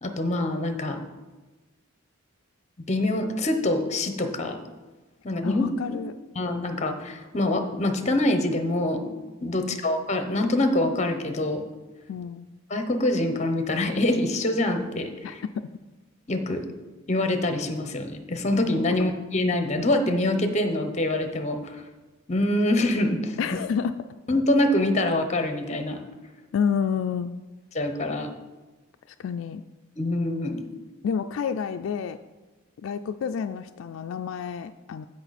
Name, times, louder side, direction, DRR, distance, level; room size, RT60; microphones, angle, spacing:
voice 1, 0.0-1.0 2.9-4.6 5.2-5.7 6.3-9.1 9.4-11.6 12.7-15.4 16.3-16.6 17.1-21.8 22.3-23.4 24.3-26.0 27.7-28.3 30.0-30.6, left 1 dB, 35° left, 7 dB, 0.9 m, -25 dB
voice 2, 5.4-6.2 9.6-9.8 12.1-12.5 15.2-15.3 23.4-24.0 26.5-27.4 29.2-29.6 31.0-32.2 32.8-35.1, left 6 dB, 75° left, 9 dB, 0.3 m, -29 dB
15.0 x 5.4 x 4.2 m, 1.2 s
head